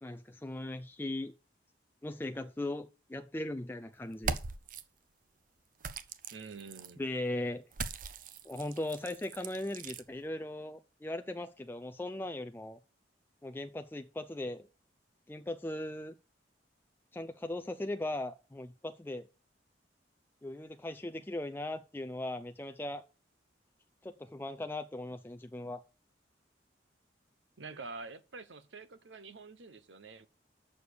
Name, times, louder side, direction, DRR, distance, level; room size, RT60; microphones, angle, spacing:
voice 1, 0.0-1.3 2.0-4.4 7.0-7.7 8.4-12.8 13.4-14.7 15.3-16.1 17.1-19.3 20.4-23.0 24.0-25.8, left 1 dB, 10° left, 0.4 m, -38 dB
sound 1, 4.1-4.8 5.8-6.9 7.7-10.0, right 5 dB, 45° right, 0.7 m, -40 dB
voice 2, 6.3-7.0 27.6-30.3, right 4 dB, 85° right, 0.9 m, -47 dB
6.7 x 6.5 x 6.8 m
head